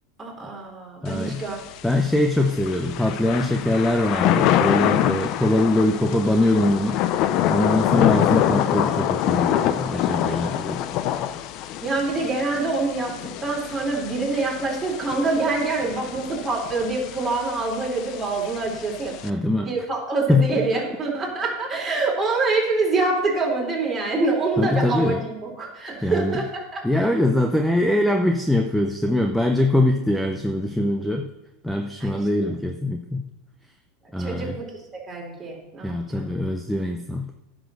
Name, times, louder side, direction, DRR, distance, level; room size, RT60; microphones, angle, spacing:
voice 1, 0.2-1.6 11.8-19.3 19.6-26.8 32.0-32.2 34.2-34.7 35.1-36.3, right 3 dB, 15° right, -3 dB, 4.3 m, -25 dB
voice 2, 1.0-1.4 1.8-7.0 7.5-10.8 19.2-19.7 20.3-20.6 24.6-25.2 26.0-26.4 26.8-31.3 31.6-33.2 34.1-34.6 35.8-37.3, left 1 dB, ahead, 4 dB, 0.8 m, -22 dB
Thunder / Rain, 1.1-19.3, left 11 dB, 50° left, 0.6 m, -26 dB
10.0 x 6.2 x 6.6 m, 0.95 s
supercardioid pair, 115°, 0 cm